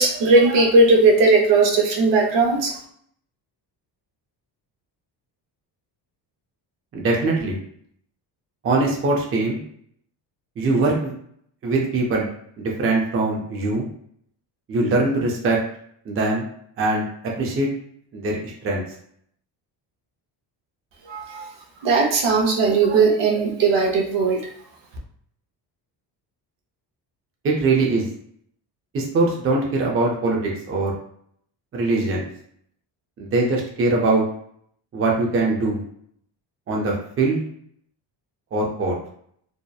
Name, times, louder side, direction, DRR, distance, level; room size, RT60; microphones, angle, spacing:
voice 1, 0.0-2.7 21.1-21.4 21.8-24.4, right 3 dB, 70° right, 0 dB, 0.7 m, -17 dB
voice 2, 6.9-7.6 8.6-9.6 10.6-11.1 11.6-12.3 12.6-13.9 14.7-15.6 16.1-16.5 16.8-17.0 17.4-17.7 18.1-18.8 27.4-28.1 28.9-30.9 31.7-32.3 33.2-34.2 34.9-35.8 36.7-37.4 38.5-39.0, right 2 dB, 30° right, -2 dB, 0.5 m, -22 dB
2.8 x 2.0 x 2.2 m, 0.66 s
cardioid pair, 140°, 44 cm